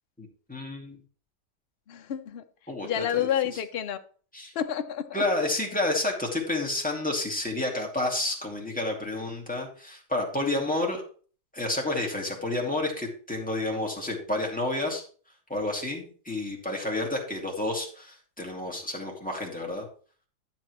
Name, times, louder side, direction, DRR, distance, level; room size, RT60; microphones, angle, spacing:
voice 1, 0.2-1.0 2.7-3.3 4.3-4.5 5.1-11.0 11.5-15.0 15.5-19.9, left 2 dB, 5° left, 2.3 m, -30 dB
voice 2, 1.9-2.4 2.8-4.0 4.5-5.2, left 10 dB, 55° left, 0.7 m, -29 dB
12.0 x 7.5 x 3.1 m
omnidirectional pair, 1.7 m